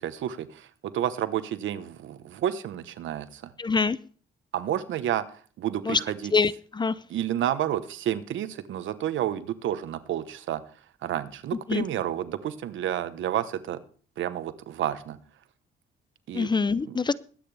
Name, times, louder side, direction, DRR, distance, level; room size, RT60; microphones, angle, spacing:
voice 1, 0.0-3.5 4.5-6.3 7.1-10.6 11.0-13.8 14.2-15.2 16.3-16.5 16.8-17.1, right 11 dB, 75° right, 13 dB, 1.1 m, -30 dB
voice 2, 3.6-4.0 5.9-6.0 6.3-6.9 11.7-11.8 16.3-17.1, left 4 dB, 20° left, 18 dB, 0.5 m, -24 dB
21.0 x 9.0 x 3.4 m, 0.41 s
cardioid pair, 90°, 20 cm